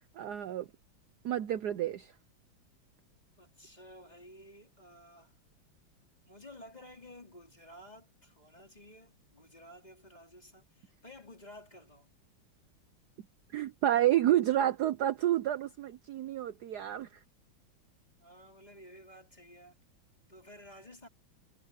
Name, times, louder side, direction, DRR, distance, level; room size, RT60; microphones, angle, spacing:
voice 1, 0.1-0.7 1.2-2.1 13.5-17.1, right 12 dB, 65° right, 1.1 m, -29 dB
voice 2, 3.4-5.3 6.2-12.1 18.2-19.8 20.3-21.1, left 1 dB, 20° left, 4.0 m, -53 dB
omnidirectional pair, 2.2 m